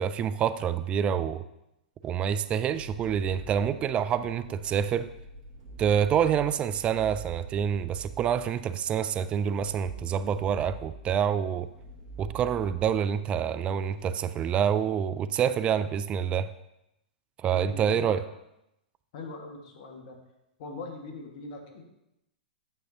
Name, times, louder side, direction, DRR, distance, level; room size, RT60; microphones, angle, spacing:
voice 1, 0.0-1.4 2.0-5.1 5.8-11.7 12.2-16.5 17.4-18.2, right 8 dB, 25° right, 14 dB, 0.3 m, -27 dB
sound 1, 2.0-14.1, right 4 dB, 50° right, 2.4 m, -46 dB
voice 2, 17.5-18.2 19.1-20.2 20.6-21.8, left 3 dB, 50° left, 2 dB, 1.6 m, -41 dB
9.0 x 6.4 x 2.7 m, 0.86 s
figure-of-eight pair, 110°, 5 cm